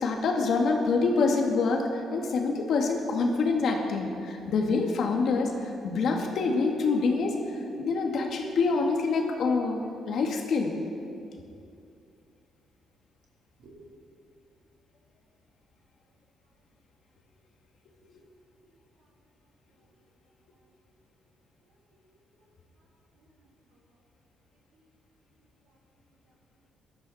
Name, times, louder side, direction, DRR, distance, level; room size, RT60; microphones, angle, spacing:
voice 1, 0.0-5.5 5.8-7.3 7.8-9.8 10.1-10.7, left 4 dB, 65° left, 1 dB, 2.2 m, -26 dB
voice 2, 18.6-19.1 21.7-22.2 22.8-22.9 23.1-23.8 24.7-24.9 25.7-25.8 26.0-26.1, right 2 dB, 80° right, -3 dB, 3.6 m, -59 dB
18.5 x 12.5 x 4.4 m, 2.4 s
cardioid pair, 90°, 0 cm